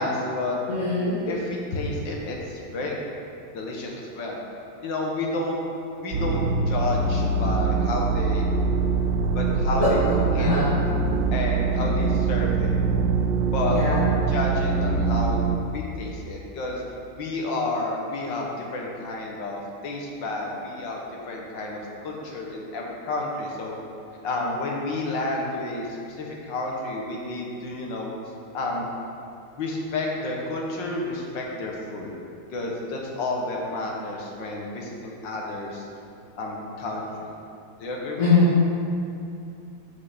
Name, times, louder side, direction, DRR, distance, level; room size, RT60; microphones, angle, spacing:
voice 1, 0.0-0.6 1.3-2.9 3.5-4.4 4.8-5.6 6.0-8.5 9.3-10.0 10.3-10.5 11.3-12.7 13.5-13.8 14.3-16.8 17.1-23.7 24.2-28.1 28.5-28.9 29.5-32.2 32.5-35.9 36.4-37.3 37.8-38.4, left 2 dB, 80° left, -1 dB, 2.0 m, -30 dB
voice 2, 0.7-1.2 9.8-9.9 10.4-10.7 13.7-14.0 38.2-38.5, left 3 dB, 45° left, -10 dB, 2.1 m, -21 dB
sound 1, 6.1-15.6, right 4 dB, 80° right, 1.4 m, -23 dB
13.5 x 5.7 x 4.1 m, 2.6 s
omnidirectional pair, 2.0 m